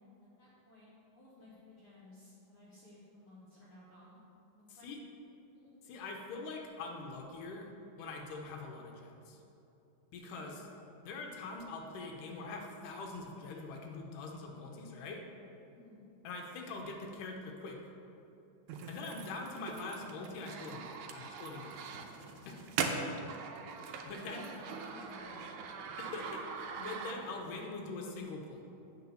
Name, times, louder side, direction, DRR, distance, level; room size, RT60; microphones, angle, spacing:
voice 1, 0.2-4.2 4.5-4.9 5.5-5.7 10.2-10.6 15.7-16.0 23.6-23.7 24.0-25.6, left 1 dB, 60° left, -8 dB, 1.4 m, -56 dB
voice 2, 4.7-5.0 5.8-7.7 8.0-9.4 10.1-10.6 11.1-15.2 16.2-17.9 18.9-22.0 22.5-22.6 23.9-24.4 26.0-28.7, left 3 dB, 75° left, 1 dB, 2.2 m, -43 dB
sound 1, 18.7-27.5, right 5 dB, 80° right, 1.9 m, -41 dB
8.2 x 4.6 x 6.9 m, 2.9 s
omnidirectional pair, 3.9 m